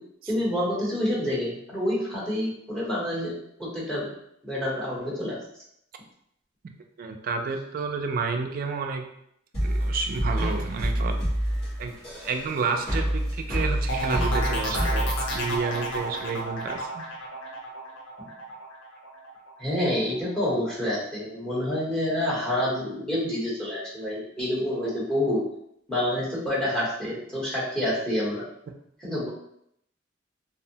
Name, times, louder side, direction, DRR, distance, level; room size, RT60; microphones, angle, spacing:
voice 1, 0.3-4.1 4.4-5.4 19.6-25.4 25.9-28.4 29.0-29.3, left 1 dB, 5° left, -8 dB, 0.9 m, -28 dB
voice 2, 7.0-9.0 9.6-11.2 11.8-17.1, right 4 dB, 50° right, 4 dB, 0.3 m, -30 dB
sound 1, 9.5-16.2, equal, 55° left, 1.3 m, -28 dB
sound 2, 13.9-19.5 19.9-20.4, equal, 85° left, 0.6 m, -32 dB
2.6 x 2.0 x 2.7 m, 0.74 s
head